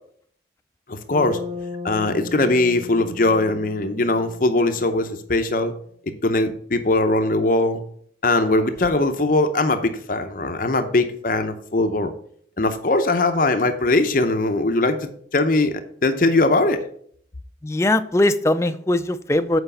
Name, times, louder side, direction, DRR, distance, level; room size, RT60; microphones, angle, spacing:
voice 1, 0.9-1.4 1.8-5.7 6.2-7.8 8.2-12.1 12.6-15.7 16.0-16.8, left 2 dB, 45° left, 7 dB, 0.7 m, -20 dB
Bass guitar, 1.1-5.2, left 3 dB, 30° right, 1.7 m, -36 dB
voice 2, 17.6-19.6, left 1 dB, 15° left, 9 dB, 0.4 m, -20 dB
8.0 x 4.9 x 6.7 m, 0.62 s
head